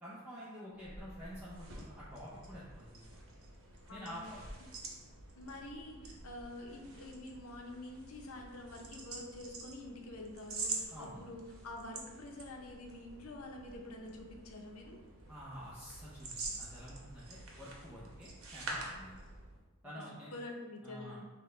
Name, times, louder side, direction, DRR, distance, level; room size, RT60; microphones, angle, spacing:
voice 1, 0.0-3.2 3.9-4.4 10.9-11.3 15.3-19.1 19.8-20.3 20.8-21.2, equal, 10° right, -9 dB, 0.6 m, -49 dB
sound 1, 0.7-19.6, right 3 dB, 70° right, 0.8 m, -47 dB
voice 2, 3.9-4.3 4.6-4.7 5.4-15.0 20.3-21.3, left 1 dB, 85° left, 1 dB, 0.6 m, -47 dB
5.9 x 2.2 x 3.2 m, 1.3 s
head